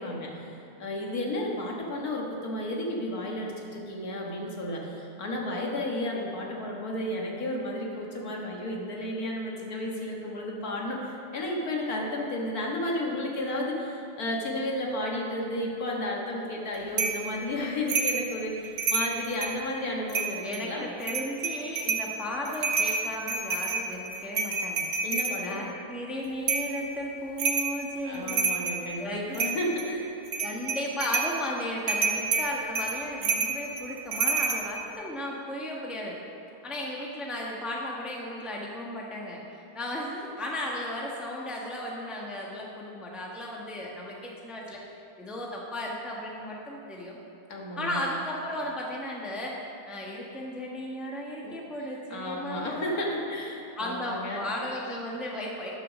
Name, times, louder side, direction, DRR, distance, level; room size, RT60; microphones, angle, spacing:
voice 1, 0.0-20.9 25.0-25.6 28.0-30.2 47.5-48.0 51.4-51.5 52.1-54.4, left 1 dB, 70° left, -2 dB, 2.0 m, -32 dB
sound 1, 17.0-17.2 17.9-18.3 18.6-19.6 20.1-20.6 21.0-22.1 22.5-25.4 26.5-26.7 27.4-27.8 28.1-28.8 29.3-29.9 30.3-31.3 31.9-34.6, right 4 dB, 50° right, 1.2 m, -28 dB
voice 2, 20.4-24.9 25.3-28.5 29.0-29.2 30.4-36.2 36.6-44.8 45.2-47.2 47.8-49.5 49.9-53.0 53.8-55.7, left 1 dB, ahead, -3 dB, 1.0 m, -35 dB
10.5 x 6.2 x 6.3 m, 2.8 s
omnidirectional pair, 1.7 m